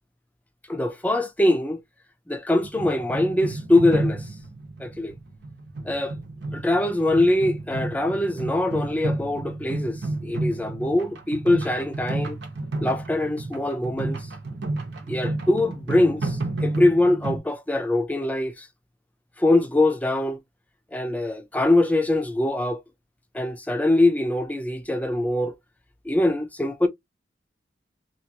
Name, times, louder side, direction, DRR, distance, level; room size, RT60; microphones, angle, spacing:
voice 1, 0.7-1.8 2.3-4.3 4.8-5.1 5.9-6.1 6.5-12.4 12.8-14.3 15.1-18.7 19.4-20.4 20.9-22.8 23.3-25.5 26.0-26.9, left 2 dB, 10° left, 0.5 m, -23 dB
sound 1, 2.6-17.4, right 2 dB, 80° right, 0.9 m, -31 dB
3.0 x 2.4 x 2.8 m
head